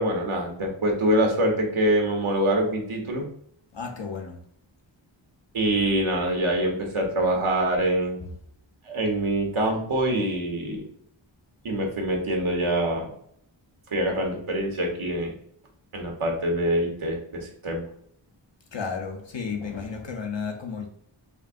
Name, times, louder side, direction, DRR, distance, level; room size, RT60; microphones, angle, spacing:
voice 1, 0.0-3.3 5.5-8.3 8.8-10.8 11.6-13.1 13.9-15.3 15.9-17.9, right 1 dB, 85° right, 1.2 m, -25 dB
voice 2, 3.7-4.4 18.7-20.9, left 5 dB, 65° left, 0.9 m, -33 dB
4.9 x 2.7 x 2.5 m
wide cardioid pair, 60°, 48 cm